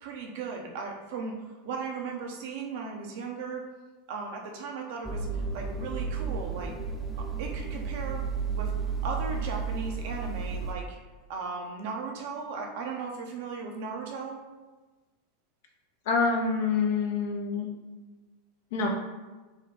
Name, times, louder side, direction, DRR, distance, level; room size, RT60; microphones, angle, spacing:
voice 1, 0.0-1.4 1.6-3.7 4.1-6.7 7.2-8.2 8.5-11.0 11.3-14.4, right 4 dB, 65° right, 1 dB, 0.8 m, -37 dB
sound 1, 5.0-10.7, right 5 dB, ahead, 0.7 m, -32 dB
voice 2, 16.1-17.7 18.7-18.9, left 4 dB, 65° left, 2 dB, 0.8 m, -26 dB
4.2 x 2.3 x 3.6 m, 1.3 s
hypercardioid pair, 95°, 0 cm